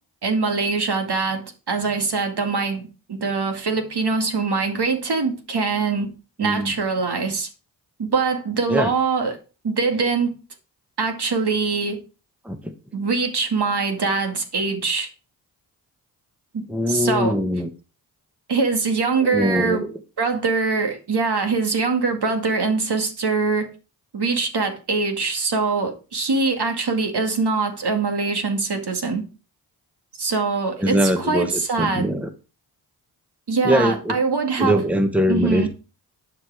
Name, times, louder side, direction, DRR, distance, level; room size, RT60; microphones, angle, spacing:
voice 1, 0.2-6.1 6.4-7.5 8.0-9.4 9.6-10.3 11.0-12.0 12.9-15.1 16.5-17.4 18.5-19.9 20.2-23.7 24.1-29.2 30.2-32.1 33.5-34.8 35.3-35.7, right 4 dB, 55° right, 2.2 m, -23 dB
voice 2, 6.4-6.7 8.7-8.9 12.4-12.7 16.7-17.7 19.3-19.9 30.8-32.3 33.6-34.2 34.6-35.7, equal, 5° right, 1.3 m, -22 dB
11.0 x 5.0 x 4.8 m
supercardioid pair, 45°, 49 cm